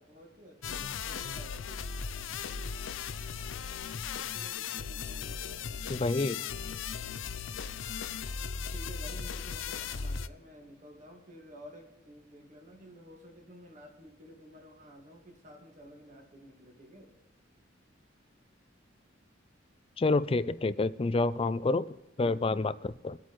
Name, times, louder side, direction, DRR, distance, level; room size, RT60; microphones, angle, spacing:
voice 1, 0.1-2.0 2.3-2.4 4.1-6.2 6.9-7.2 8.7-17.1 22.2-22.9, equal, 40° right, 2 dB, 1.9 m, -52 dB
sound 1, 0.6-10.3, left 6 dB, 80° left, 0.5 m, -37 dB
voice 2, 5.9-6.4 20.0-23.2, left 3 dB, 30° left, 15 dB, 0.4 m, -28 dB
22.5 x 8.4 x 3.1 m, 1.0 s
head